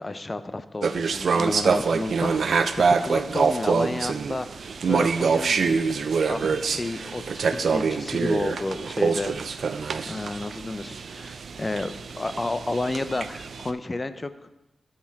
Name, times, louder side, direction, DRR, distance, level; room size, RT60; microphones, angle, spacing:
voice 1, 0.0-4.6 4.9-5.9 6.3-9.3 10.0-14.3, left 2 dB, 25° left, 11 dB, 0.5 m, -31 dB
sound 1, 0.8-13.7, right 5 dB, 75° right, 0.3 m, -25 dB
13.0 x 4.4 x 3.5 m, 0.93 s
wide cardioid pair, 95°, 0 cm